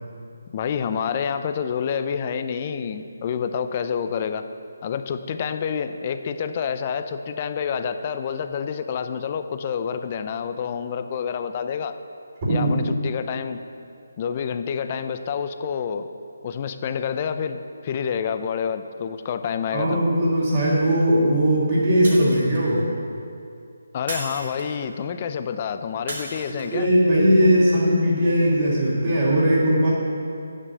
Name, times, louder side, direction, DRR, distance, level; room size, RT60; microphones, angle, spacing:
voice 1, 0.5-4.4 4.8-12.0 12.5-13.6 14.2-16.1 16.4-20.0 23.9-26.9, left 7 dB, 35° left, 9 dB, 0.5 m, -28 dB
voice 2, 12.4-12.8 19.7-22.9 26.5-29.9, equal, 40° right, -9 dB, 3.1 m, -19 dB
Shatter, 22.0-22.8 24.1-24.9 26.1-26.9, right 2 dB, 55° right, 2.7 m, -35 dB
9.7 x 7.4 x 6.9 m, 2.5 s
figure-of-eight pair, 155°, 0 cm